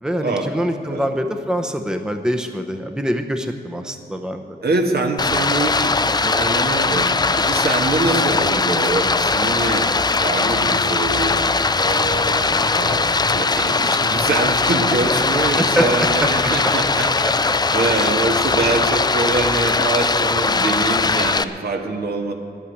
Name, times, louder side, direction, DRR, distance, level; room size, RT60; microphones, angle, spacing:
voice 1, 0.0-4.6 15.6-16.5 17.2-17.3 17.9-18.1, equal, 5° right, 6 dB, 0.8 m, -24 dB
voice 2, 4.6-9.9 10.2-11.4 11.8-13.1 13.3-17.1 17.7-22.3, right 2 dB, 65° right, 3 dB, 1.5 m, -24 dB
Stream, 5.2-21.4, left 3 dB, 25° left, 0.4 m, -19 dB
11.0 x 8.7 x 9.8 m, 2.5 s
wide cardioid pair, 110°, 18 cm